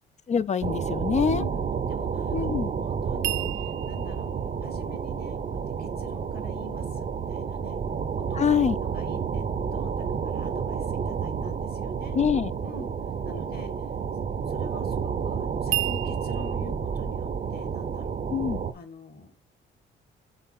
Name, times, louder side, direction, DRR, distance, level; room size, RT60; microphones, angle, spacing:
voice 1, 0.3-1.5 2.3-2.7 8.4-8.8 12.1-12.5 18.3-18.6, left 7 dB, 35° left, 0.4 m, -24 dB
sound 1, 0.6-18.7, right 6 dB, 40° right, 0.7 m, -30 dB
voice 2, 1.2-4.3 4.6-7.8 8.1-9.9 10.2-12.2 12.6-12.9 13.2-13.9 14.5-18.2 18.7-19.4, left 3 dB, 50° left, 1.6 m, -46 dB
sound 2, 3.2-6.3 15.7-16.5, right 16 dB, 85° right, 0.5 m, -33 dB
5.8 x 3.9 x 5.8 m
cardioid pair, 90°, 20 cm